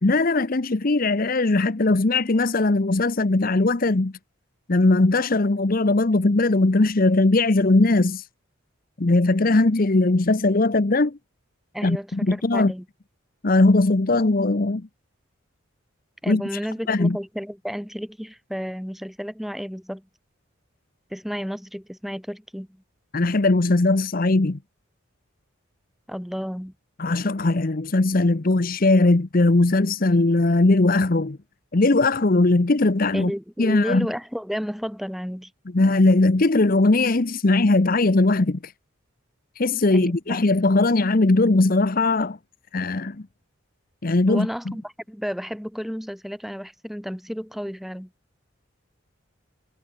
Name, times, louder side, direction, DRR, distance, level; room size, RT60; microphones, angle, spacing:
voice 1, 0.0-4.1 4.7-8.3 9.0-11.2 11.8-12.7 13.4-14.9 16.3-16.4 16.9-17.2 23.1-24.6 27.0-31.4 31.7-33.3 33.6-34.1 35.7-38.7 39.6-42.4 42.7-43.2 44.0-44.5, left 2 dB, 40° left, 0.8 m, -19 dB
voice 2, 11.7-12.8 16.2-20.1 21.1-22.8 26.1-26.7 33.1-35.5 39.9-40.4 44.3-48.1, equal, ahead, 5.0 m, -32 dB
head